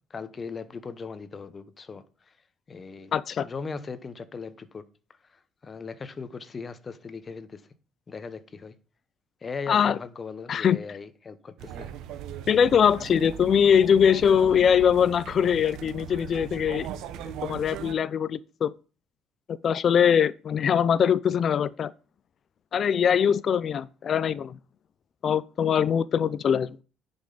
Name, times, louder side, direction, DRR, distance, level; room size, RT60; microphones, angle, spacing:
voice 1, 0.1-2.3 2.7-3.1 3.4-4.8 5.3-7.6 8.1-8.8 9.4-11.9, left 5 dB, 30° left, 0.8 m, -39 dB
voice 2, 3.1-3.5 9.7-10.0 10.5-10.8 12.5-16.9 17.4-18.7 19.6-21.9 22.7-24.6 25.2-26.8, left 8 dB, 45° left, 0.4 m, -22 dB
sound 1, 11.6-17.9, right 9 dB, 80° right, 0.9 m, -39 dB
10.0 x 5.3 x 3.9 m
cardioid pair, 120°, 0 cm